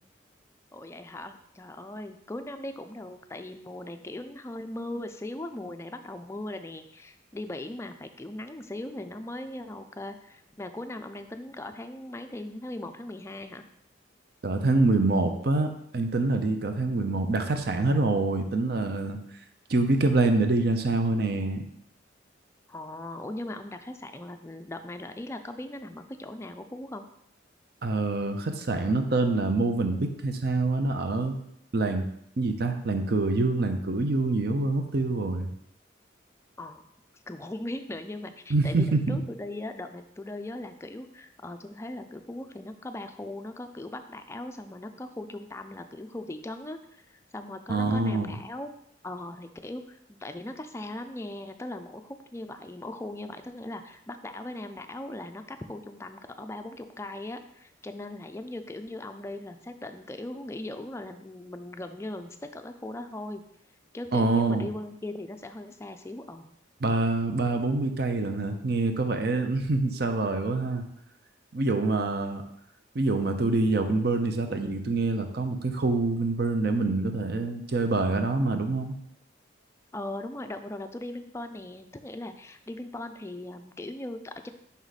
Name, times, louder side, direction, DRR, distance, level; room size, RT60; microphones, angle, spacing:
voice 1, 0.7-13.6 22.7-27.1 36.6-36.8 37.3-46.8 47.1-48.7 49.0-63.4 63.9-66.5 79.9-84.5, left 1 dB, 15° left, 7 dB, 0.3 m, -39 dB
voice 2, 14.4-19.2 19.7-21.6 27.8-31.3 31.7-32.0 32.4-35.5 38.5-39.2 47.7-48.3 64.1-64.7 66.8-70.9 71.5-72.4 72.9-78.9, right 3 dB, 55° right, 6 dB, 0.6 m, -26 dB
5.5 x 4.7 x 4.0 m, 0.73 s
head